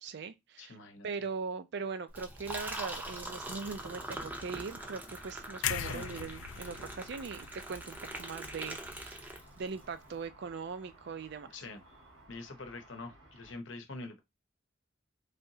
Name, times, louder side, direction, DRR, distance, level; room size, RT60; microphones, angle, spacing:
voice 1, 0.0-0.8 1.0-11.5, right 5 dB, 60° right, 0.4 m, -40 dB
voice 2, 0.6-1.1 5.8-6.1 11.5-11.8 12.3-14.2, left 3 dB, 70° left, 0.8 m, -45 dB
Liquid, 2.1-9.8, right 1 dB, 10° right, 0.6 m, -43 dB
Car / Traffic noise roadway noise / Engine, 3.0-13.5, right 1 dB, 85° right, 1.5 m, -58 dB
sound 1, 5.6-9.7 10.0-10.2, left 10 dB, 85° left, 0.3 m, -40 dB
3.4 x 2.8 x 2.7 m
head